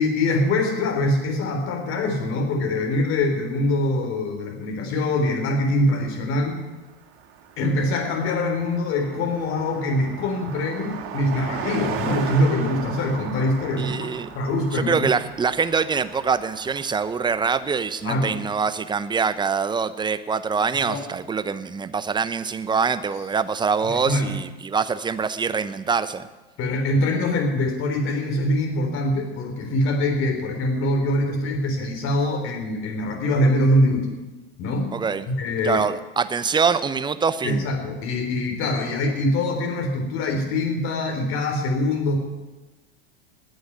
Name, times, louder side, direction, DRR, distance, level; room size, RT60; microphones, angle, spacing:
voice 1, 0.0-6.6 7.6-14.1 14.3-14.9 18.0-18.4 20.9-21.0 23.8-24.4 26.6-34.1 34.6-34.9 35.3-35.8 37.4-42.2, left 1 dB, 45° left, 3 dB, 3.8 m, -23 dB
Car passing by, 6.7-6.8 7.0-18.0, right 7 dB, 45° right, 2.5 m, -36 dB
voice 2, 13.8-14.3 14.7-26.3 34.9-35.3 35.6-37.6, right 5 dB, 15° right, 12 dB, 0.8 m, -24 dB
18.5 x 6.5 x 9.4 m, 1.2 s
hypercardioid pair, 90°, 30 cm